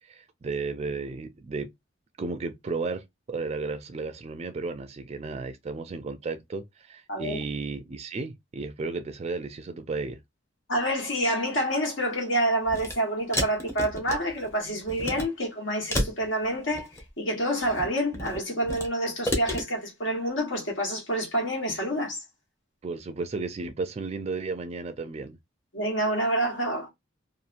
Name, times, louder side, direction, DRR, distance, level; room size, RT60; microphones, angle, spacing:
voice 1, 0.0-1.7 2.2-10.2 22.8-25.4, right 4 dB, 35° right, 0.3 m, -34 dB
voice 2, 7.1-7.4 10.7-16.9 17.2-22.2 25.7-26.9, right 1 dB, 70° left, 1.3 m, -28 dB
sound 1, 12.6-12.9 13.3-14.5 14.9-15.3 15.9-17.1 17.6-18.9 19.2-19.6, equal, 15° left, 0.7 m, -30 dB
2.7 x 2.4 x 2.4 m
head